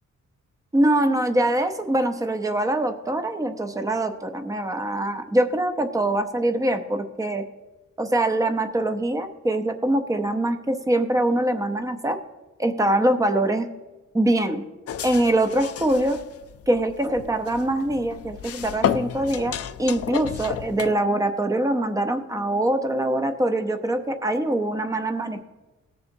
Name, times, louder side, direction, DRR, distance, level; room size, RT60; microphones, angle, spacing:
voice 1, 0.7-7.4 8.0-12.2 12.6-13.7 14.1-14.6 15.0-16.2 16.7-25.5, right 1 dB, 10° right, 7 dB, 0.6 m, -23 dB
sound 1, 14.9-20.9, left 9 dB, 50° left, 0.4 m, -31 dB
19.0 x 6.8 x 2.6 m, 1.1 s
wide cardioid pair, 170°, 30 cm